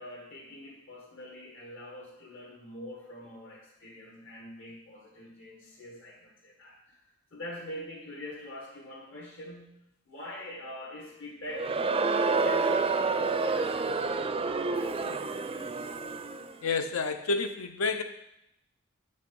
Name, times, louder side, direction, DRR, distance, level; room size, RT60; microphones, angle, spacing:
voice 1, 0.0-7.0 7.3-9.8 10.1-15.4, left 1 dB, 65° left, -3 dB, 1.7 m, -44 dB
Crowd, 11.5-16.5, right 4 dB, 25° right, 0.4 m, -29 dB
voice 2, 16.6-18.0, left 4 dB, 80° left, 7 dB, 0.6 m, -29 dB
7.8 x 5.4 x 5.3 m, 0.81 s
head